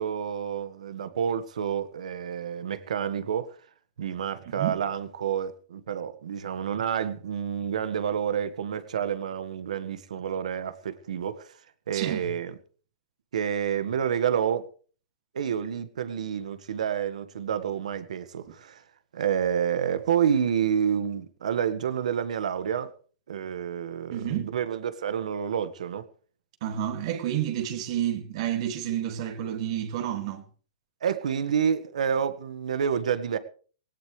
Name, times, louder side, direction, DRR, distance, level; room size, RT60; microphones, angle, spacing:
voice 1, 0.0-3.5 4.0-11.5 11.9-12.5 13.3-14.6 15.3-18.8 19.1-22.9 23.3-26.0 31.0-33.4, right 8 dB, 80° right, 1.6 m, -29 dB
voice 2, 4.5-4.8 11.9-12.3 24.1-24.5 26.6-30.4, right 11 dB, 50° right, 2.4 m, -30 dB
18.5 x 17.5 x 3.3 m
hypercardioid pair, 150°, 4 cm